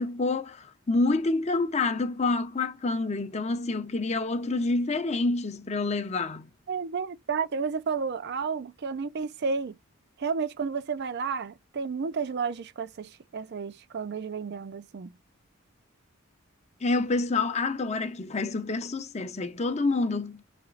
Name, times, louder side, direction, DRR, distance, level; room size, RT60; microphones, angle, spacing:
voice 1, 0.0-6.5 16.8-20.4, left 3 dB, 30° left, 0.6 m, -28 dB
voice 2, 6.7-9.8 10.2-15.1, right 5 dB, 50° right, 0.4 m, -31 dB
4.2 x 3.0 x 3.8 m
head